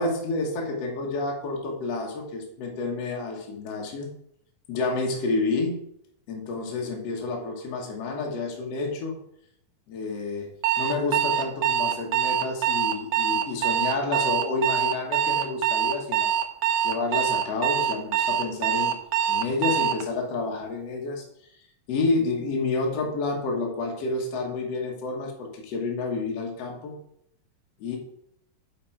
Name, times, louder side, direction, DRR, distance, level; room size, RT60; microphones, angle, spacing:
voice 1, 0.0-4.1 4.7-5.8 6.3-9.1 9.9-10.5 10.8-16.3 16.8-18.9 19.3-21.3 21.9-27.0 27.8-28.0, left 3 dB, 55° left, 0 dB, 2.1 m, -29 dB
Alarm, 10.6-20.0, right 10 dB, 85° right, 1.7 m, -24 dB
8.5 x 5.7 x 4.6 m, 0.72 s
omnidirectional pair, 4.1 m